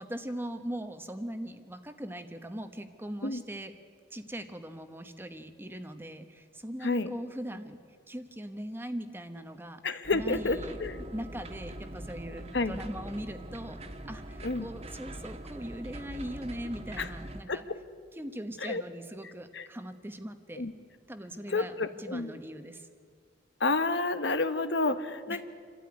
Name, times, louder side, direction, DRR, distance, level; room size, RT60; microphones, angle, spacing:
voice 1, 0.0-3.7 4.1-7.8 8.1-9.8 10.1-10.8 11.1-13.8 14.0-17.6 18.2-20.7 21.1-22.9 25.3-25.4, equal, 10° right, 8 dB, 1.1 m, -40 dB
voice 2, 9.8-11.0 12.5-12.8 14.4-14.6 17.0-17.1 17.5-17.8 18.6-18.8 19.5-19.7 20.6-20.7 21.5-22.3 23.6-25.4, left 3 dB, 70° left, 10 dB, 1.1 m, -30 dB
sound 1, 10.0-17.4, right 1 dB, 35° right, 1.4 m, -43 dB
27.5 x 13.5 x 9.7 m, 2.1 s
head